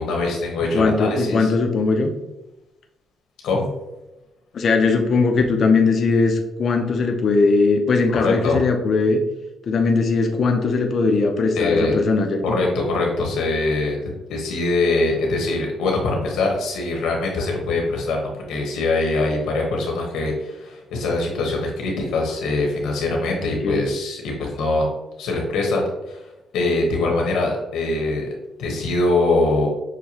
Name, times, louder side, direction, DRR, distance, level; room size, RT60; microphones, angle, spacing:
voice 1, 0.0-1.5 3.4-3.7 8.2-8.6 11.6-11.9 12.4-14.0 14.3-24.8 25.2-26.2 26.5-28.3 28.6-29.7, left 2 dB, 85° left, 0 dB, 1.2 m, -23 dB
voice 2, 0.7-2.1 4.5-9.2 9.7-12.6 23.6-23.8, left 4 dB, 55° left, 4 dB, 0.6 m, -19 dB
6.5 x 2.2 x 2.9 m, 0.97 s
cardioid pair, 90°, 0 cm